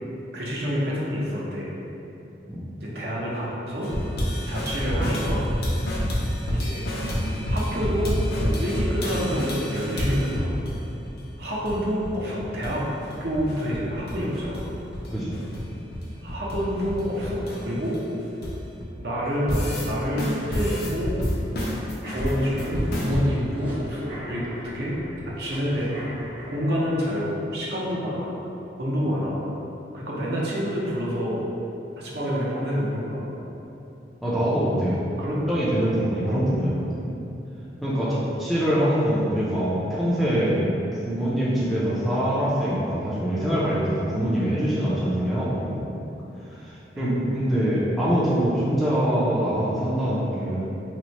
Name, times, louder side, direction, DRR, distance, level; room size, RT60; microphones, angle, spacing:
voice 1, 0.3-1.7 2.8-3.9 4.5-5.4 6.5-7.0 7.5-10.5 11.4-12.9 13.2-14.7 16.2-18.0 19.0-21.2 22.0-24.9 25.4-26.0 26.5-28.3 28.8-29.4 29.9-31.5 32.0-33.3 35.2-35.5 36.2-36.5 46.9-47.2, equal, 65° right, -5 dB, 0.6 m, -28 dB
sound 1, 3.8-10.8 11.0-11.2 11.4-12.1 12.4-12.7 13.0-14.6 14.9-18.8 19.2-19.9 20.2-23.2, equal, 60° left, 0.5 m, -28 dB
sound 2, 20.4-26.8, equal, 30° right, 0.7 m, -41 dB
voice 2, 34.2-35.0 35.5-37.0 37.8-40.6 40.9-45.8 46.5-50.7, equal, ahead, -9 dB, 0.4 m, -24 dB
3.0 x 2.1 x 3.9 m, 2.9 s
head